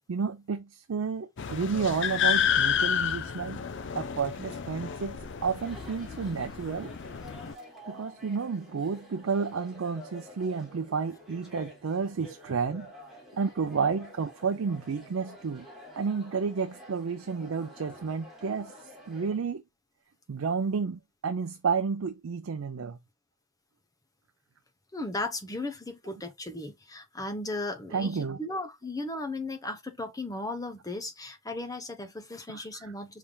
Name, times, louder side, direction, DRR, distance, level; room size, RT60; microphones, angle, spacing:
voice 1, 0.1-3.6 4.0-6.9 7.9-12.9 13.3-15.7 16.0-18.7 19.1-19.6 20.3-23.0 27.9-28.4 32.5-32.6, right 5 dB, 75° right, 0.5 m, -31 dB
sound 1, 1.4-7.5, left 8 dB, 60° left, 0.6 m, -30 dB
Chatter, 5.3-19.4, left 1 dB, ahead, 2.3 m, -49 dB
voice 2, 24.9-33.2, left 2 dB, 15° left, 0.8 m, -36 dB
5.6 x 3.4 x 2.3 m
head